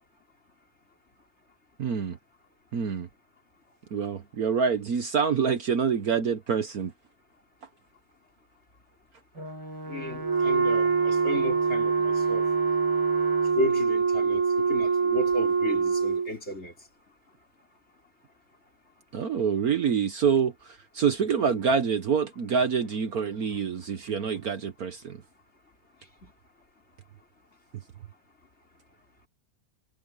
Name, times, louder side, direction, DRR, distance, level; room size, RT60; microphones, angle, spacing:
voice 1, 1.8-2.2 2.7-3.1 3.9-6.9 19.1-25.2, right 6 dB, 55° right, 1.4 m, -26 dB
Brass instrument, 9.3-13.7, right 1 dB, 75° right, 8.4 m, -39 dB
voice 2, 9.9-12.5 13.5-16.7 26.2-26.3, left 1 dB, 35° left, 4.7 m, -34 dB
Wind instrument woodwind instrument, 10.2-16.3, right 5 dB, 15° right, 1.5 m, -24 dB
omnidirectional pair, 2.0 m